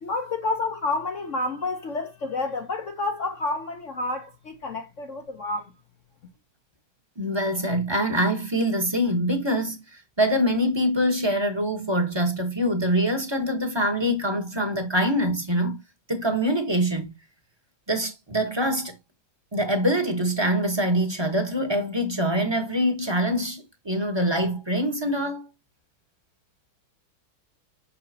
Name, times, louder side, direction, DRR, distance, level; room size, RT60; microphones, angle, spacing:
voice 1, 0.0-5.7, left 2 dB, 55° left, 0.8 m, -29 dB
voice 2, 7.2-15.8 16.1-17.1 17.9-19.0 19.5-25.5, equal, 15° right, 0.9 m, -24 dB
6.3 x 5.8 x 2.8 m
omnidirectional pair, 2.2 m